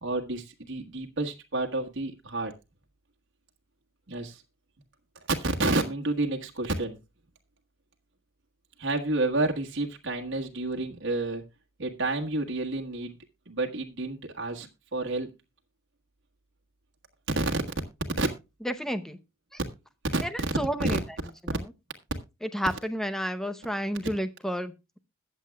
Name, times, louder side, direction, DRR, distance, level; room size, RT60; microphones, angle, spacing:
voice 1, 0.0-2.5 4.1-4.4 5.4-7.0 8.8-11.4 11.8-13.2 13.5-15.3 17.4-17.6 18.2-18.3 20.1-20.5 20.8-21.0, right 2 dB, 65° right, 2 dB, 1.5 m, -29 dB
voice 2, 18.6-19.2 20.2-21.0 21.4-21.6 22.4-25.0, equal, ahead, 10 dB, 0.8 m, -31 dB
21.5 x 7.6 x 2.3 m, 0.26 s
head